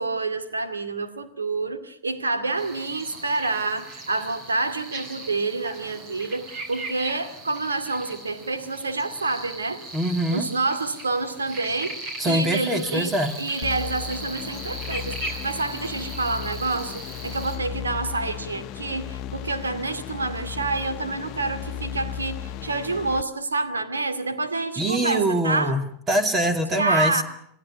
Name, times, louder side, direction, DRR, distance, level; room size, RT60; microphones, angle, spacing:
voice 1, 0.0-9.8 10.3-25.7 26.8-27.2, right 3 dB, 90° right, 9 dB, 2.3 m, -28 dB
sound 1, 2.6-17.6, right 2 dB, 45° right, 7.5 m, -38 dB
voice 2, 9.9-10.5 12.2-13.3 24.8-27.2, right 1 dB, 25° right, 8 dB, 2.5 m, -24 dB
sound 2, 13.6-23.2, left 9 dB, 45° left, 1.0 m, -35 dB
27.5 x 17.0 x 9.3 m, 0.69 s
hypercardioid pair, 95°, 0 cm